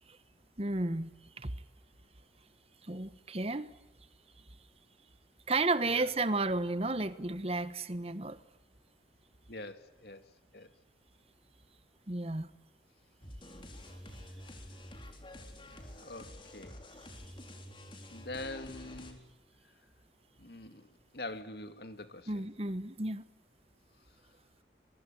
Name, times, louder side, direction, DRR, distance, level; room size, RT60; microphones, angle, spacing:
voice 1, 0.6-1.5 2.8-3.7 5.5-8.4 12.1-12.5 22.3-23.3, right 2 dB, 35° right, 1.3 m, -33 dB
voice 2, 9.5-10.7 16.0-16.8 18.1-19.3 20.4-20.9 21.1-22.5, left 2 dB, 60° left, 2.3 m, -44 dB
sound 1, 13.2-19.1, left 1 dB, 30° left, 3.9 m, -49 dB
28.0 x 23.0 x 8.9 m
head